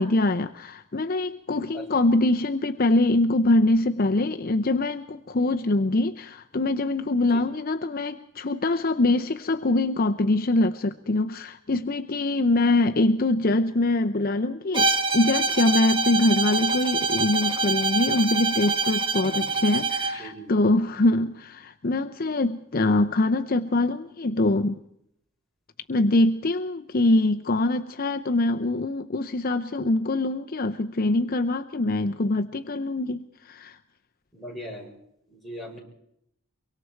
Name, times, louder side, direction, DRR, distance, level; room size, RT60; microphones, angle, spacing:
voice 1, 0.0-24.8 25.9-33.8, left 2 dB, 40° left, 7 dB, 0.7 m, -24 dB
voice 2, 1.7-2.0 7.3-7.4 19.2-19.5 20.2-20.5 34.3-34.9 35.3-35.8, equal, ahead, -3 dB, 6.2 m, -39 dB
Bowed string instrument, 14.7-20.2, right 3 dB, 25° right, 1.3 m, -25 dB
24.0 x 24.0 x 4.6 m, 0.75 s
head